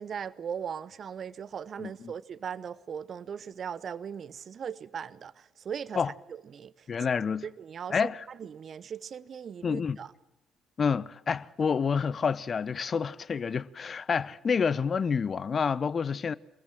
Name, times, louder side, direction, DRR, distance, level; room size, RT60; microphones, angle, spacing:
voice 1, 0.0-5.3 5.6-6.0 6.5-6.7 7.6-7.9 8.4-10.1, right 7 dB, 45° right, 0.9 m, -38 dB
voice 2, 1.8-2.1 5.9-6.1 6.9-7.5 7.9-8.3 9.6-10.0 10.8-16.3, left 6 dB, 40° left, 0.8 m, -28 dB
24.5 x 22.0 x 7.5 m
figure-of-eight pair, 45°, 0 cm